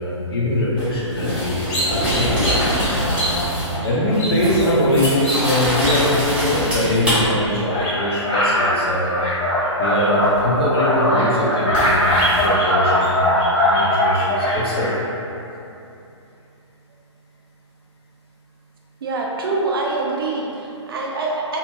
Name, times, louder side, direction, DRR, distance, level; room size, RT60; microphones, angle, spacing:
voice 1, 0.0-2.3 2.9-9.3 9.8-14.9, left 1 dB, 50° left, -5 dB, 0.7 m, -22 dB
sound 1, 0.8-3.8 4.1-7.2 10.4-10.5 11.7-12.5, equal, 5° right, 0.7 m, -24 dB
sound 2, 1.7-6.9 7.3-8.7 9.1-14.9, left 1 dB, 30° left, 1.0 m, -21 dB
voice 2, 19.0-21.6, right 3 dB, 50° right, -1 dB, 0.4 m, -25 dB
2.5 x 2.4 x 2.9 m, 2.8 s
figure-of-eight pair, 130°, 16 cm